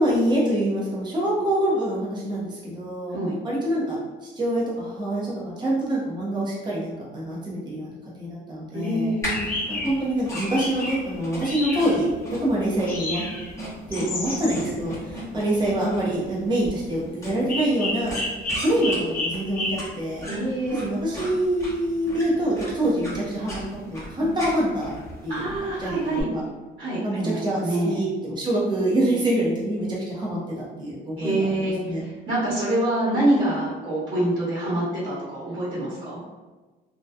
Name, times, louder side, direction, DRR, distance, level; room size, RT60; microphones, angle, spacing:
voice 1, 0.0-3.1 3.4-9.1 9.7-12.1 12.4-13.2 13.9-18.2 18.6-20.3 20.8-23.6 23.9-24.9 25.2-25.4 25.8-26.4 27.0-32.0, right 1 dB, 20° right, -5 dB, 0.7 m, -25 dB
voice 2, 8.7-9.4 20.2-20.8 25.3-26.2 26.8-28.0 31.2-36.2, right 1 dB, 40° right, -10 dB, 1.2 m, -26 dB
sound 1, 8.8-8.9 9.3-9.9 10.3-11.0 11.4-12.0 12.9-13.5 13.9-14.8 17.5-19.8, left 2 dB, 45° left, 0.6 m, -30 dB
sound 2, 9.2-26.2, equal, 15° left, 0.9 m, -38 dB
2.7 x 2.2 x 2.2 m, 1.3 s
cardioid pair, 90°, 20 cm